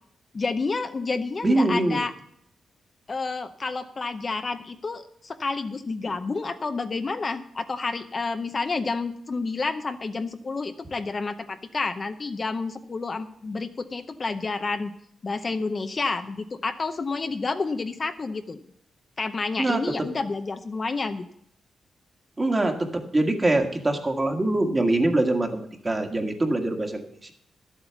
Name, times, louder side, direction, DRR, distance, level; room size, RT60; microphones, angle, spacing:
voice 1, 0.3-2.1 3.1-14.9 15.2-18.6 19.2-21.3, left 3 dB, 35° left, 8 dB, 0.7 m, -29 dB
voice 2, 1.4-2.0 19.6-19.8 22.4-27.3, right 2 dB, 25° right, 4 dB, 1.7 m, -24 dB
11.5 x 8.1 x 7.0 m, 0.70 s
cardioid pair, 100°, 0 cm